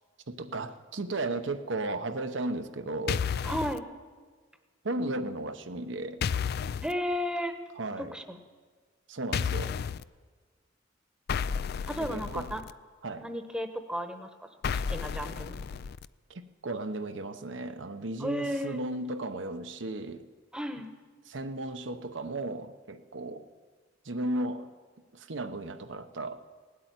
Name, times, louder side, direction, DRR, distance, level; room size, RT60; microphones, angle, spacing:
voice 1, 0.3-3.3 4.8-6.2 7.8-8.1 9.1-9.7 12.0-12.5 13.0-13.3 16.3-20.3 21.3-23.4 24.0-24.7 25.1-26.4, right 2 dB, 70° right, 9 dB, 0.9 m, -35 dB
sound 1, 3.1-3.8 6.2-6.9 9.3-10.0 11.3-12.7 14.6-16.1, left 6 dB, 55° left, 0.4 m, -32 dB
voice 2, 3.4-3.8 6.8-7.5 8.1-8.4 11.9-12.6 13.2-14.5 14.7-15.5 18.2-18.8 20.5-20.9, equal, 5° right, 7 dB, 1.0 m, -33 dB
18.0 x 8.5 x 9.2 m, 1.5 s
head